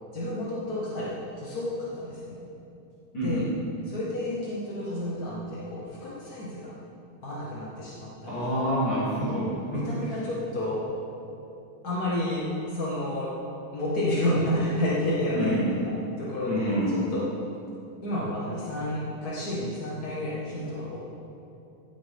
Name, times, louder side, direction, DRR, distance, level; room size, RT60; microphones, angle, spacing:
voice 1, 0.1-2.4 3.2-3.4 3.8-6.8 7.2-8.4 9.7-10.9 11.8-13.3 13.7-15.6 16.2-16.7 17.1-17.3 18.0-21.0, left 1 dB, 55° left, -7 dB, 1.0 m, -30 dB
voice 2, 3.1-3.6 8.3-10.2 15.3-15.7 16.5-17.1, equal, 30° left, -12 dB, 3.6 m, -27 dB
16.0 x 10.0 x 3.6 m, 2.8 s
omnidirectional pair, 4.3 m